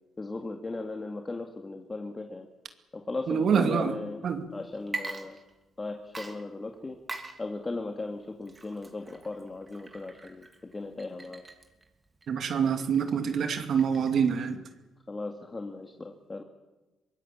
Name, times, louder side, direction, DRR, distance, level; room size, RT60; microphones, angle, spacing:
voice 1, 0.2-2.5 2.9-4.3 4.5-5.4 5.8-7.0 7.4-10.5 10.7-11.4 15.1-16.4, left 3 dB, 25° left, 4 dB, 2.2 m, -37 dB
voice 2, 3.3-4.0 4.2-4.4 12.3-14.6, right 7 dB, 60° right, 6 dB, 2.4 m, -26 dB
Water / Liquid, 4.8-5.8 6.1-14.4, right 2 dB, 25° right, 3.1 m, -43 dB
23.5 x 20.5 x 8.7 m, 1.1 s
cardioid pair, 90°, 0 cm